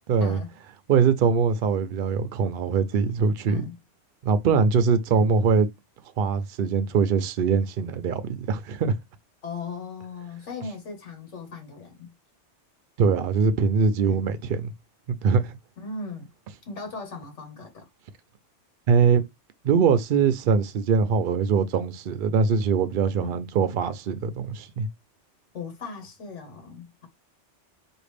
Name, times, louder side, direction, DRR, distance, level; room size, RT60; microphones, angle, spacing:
voice 1, 0.1-0.4 0.9-3.6 4.2-5.7 6.2-9.0 13.0-14.7 15.2-15.5 18.9-19.3 19.6-24.9, right 5 dB, 60° right, 0.6 m, -22 dB
voice 2, 9.4-12.1 14.0-14.2 15.8-16.3 16.6-17.9 23.2-23.3 25.5-27.1, left 4 dB, 75° left, 1.6 m, -38 dB
5.0 x 2.6 x 3.3 m
omnidirectional pair, 1.2 m